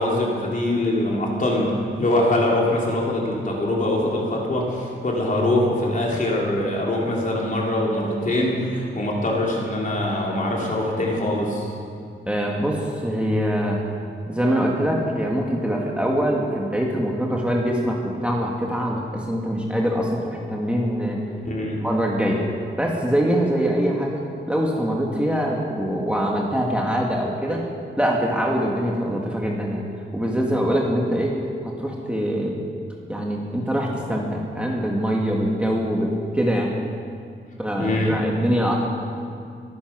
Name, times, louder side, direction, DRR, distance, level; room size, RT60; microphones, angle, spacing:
voice 1, 0.0-11.7 21.4-21.8 37.8-38.2, left 1 dB, 40° left, -3 dB, 3.3 m, -23 dB
voice 2, 12.3-13.8 14.3-21.2 21.8-22.4 22.8-27.6 28.0-29.8 30.1-31.4 31.6-32.6 33.1-36.8 37.6-38.9, equal, 5° right, -2 dB, 1.6 m, -23 dB
23.5 x 10.0 x 6.1 m, 2.4 s
wide cardioid pair, 145°, 21 cm